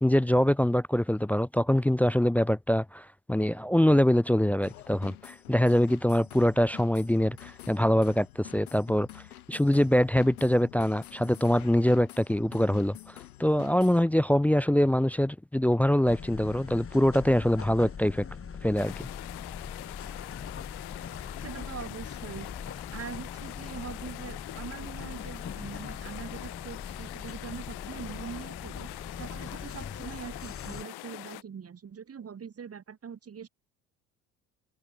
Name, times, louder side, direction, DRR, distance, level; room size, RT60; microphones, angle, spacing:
voice 1, 0.0-9.2 9.5-13.1 13.4-18.3 18.6-19.1, equal, 5° left, 0.5 m, -24 dB
sound 1, 4.6-14.0, left 15 dB, 80° left, 2.6 m, -48 dB
sound 2, 16.1-30.8, left 6 dB, 30° left, 5.0 m, -41 dB
sound 3, 18.8-31.4, left 21 dB, 65° left, 6.0 m, -44 dB
voice 2, 21.4-33.5, right 7 dB, 35° right, 3.7 m, -43 dB
hypercardioid pair, 65°, 43 cm